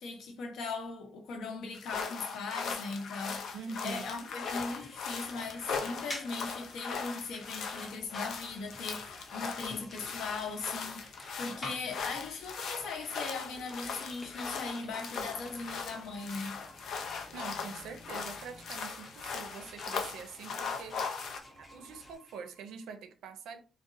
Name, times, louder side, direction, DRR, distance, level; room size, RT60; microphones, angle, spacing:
voice 1, 0.0-3.6 3.8-16.6, left 4 dB, 75° left, 0.8 m, -39 dB
sound 1, 1.7-21.4, left 5 dB, 55° left, 0.5 m, -39 dB
sound 2, 3.2-22.2, equal, 20° right, 0.9 m, -59 dB
voice 2, 3.5-4.3 17.3-21.2 21.6-23.6, right 5 dB, 85° right, 0.5 m, -45 dB
sound 3, 4.4-22.8, left 1 dB, 15° left, 0.7 m, -51 dB
3.8 x 2.0 x 2.6 m
cardioid pair, 160°, 0 cm